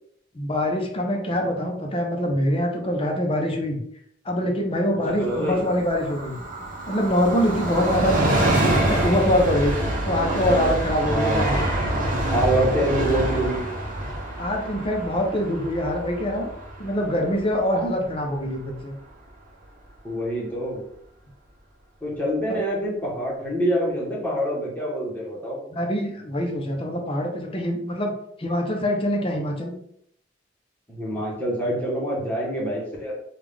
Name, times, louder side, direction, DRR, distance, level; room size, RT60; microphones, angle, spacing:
voice 1, 0.3-3.8 4.2-6.4 6.9-8.3 8.7-9.7 10.1-11.6 14.4-16.5 16.8-18.9 22.5-22.6 25.7-28.1 28.4-29.7, equal, 30° left, 2 dB, 0.7 m, -24 dB
Train, 5.0-18.4 18.7-18.8, right 1 dB, 45° right, 0.8 m, -26 dB
voice 2, 5.1-5.6 9.8-9.9 10.3-10.6 11.1-11.7 12.3-13.6 20.0-20.8 22.0-25.6 30.9-33.1, right 1 dB, 10° left, -5 dB, 1.2 m, -26 dB
3.6 x 2.4 x 3.4 m, 0.69 s
head